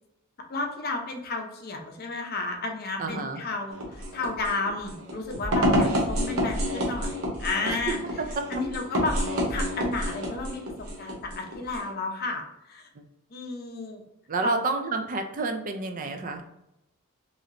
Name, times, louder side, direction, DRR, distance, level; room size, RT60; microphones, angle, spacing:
voice 1, 0.5-8.0 8.5-10.6 11.0-12.4 12.7-12.8 13.3-14.0 14.4-14.6, left 3 dB, 45° left, 2 dB, 0.5 m, -32 dB
voice 2, 3.0-3.4 7.7-7.8 8.2-8.3 14.3-16.4, right 3 dB, 40° right, 6 dB, 0.4 m, -29 dB
sound 1, 3.7-11.9, equal, 70° right, 0.8 m, -28 dB
3.1 x 2.8 x 2.5 m, 0.85 s
head